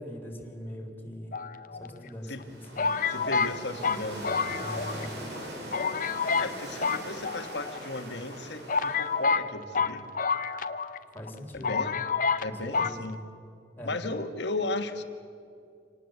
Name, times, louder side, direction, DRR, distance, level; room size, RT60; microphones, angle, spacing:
voice 1, 0.0-1.4 1.8-3.0 4.6-5.1 11.1-11.8 12.4-13.0 13.8-14.0, equal, 10° left, 0 dB, 3.5 m, -41 dB
sound 1, 1.3-2.1 2.8-5.1 5.3-5.4 5.7-6.5 6.8-7.8 8.3-8.4 8.7-11.0 11.3-11.4 11.6-12.5 12.7-13.0, left 5 dB, 50° left, 0.7 m, -28 dB
sound 2, 2.2-9.3, right 1 dB, 65° right, 5.4 m, -41 dB
voice 2, 3.1-4.6 6.4-10.1 11.5-12.0 12.4-13.2 13.8-15.0, left 2 dB, 70° left, 7 dB, 1.6 m, -35 dB
26.5 x 19.0 x 8.0 m, 2.5 s
head